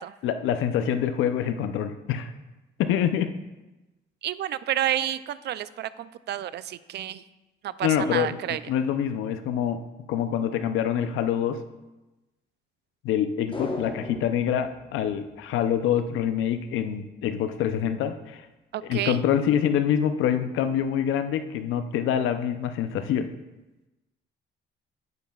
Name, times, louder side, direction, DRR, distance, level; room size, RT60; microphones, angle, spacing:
voice 1, 0.2-2.3 2.8-3.3 7.8-8.4 8.7-9.8 10.1-11.6 13.0-18.5 18.8-23.3, left 9 dB, 90° left, 9 dB, 0.6 m, -26 dB
voice 2, 4.2-7.2 7.6-8.6 18.7-19.2, right 12 dB, 60° right, 16 dB, 0.4 m, -30 dB
sound 1, 13.5-16.0 16.3-16.4, left 2 dB, 25° left, 1.1 m, -37 dB
9.3 x 9.1 x 2.3 m, 1.1 s
cardioid pair, 90°, 20 cm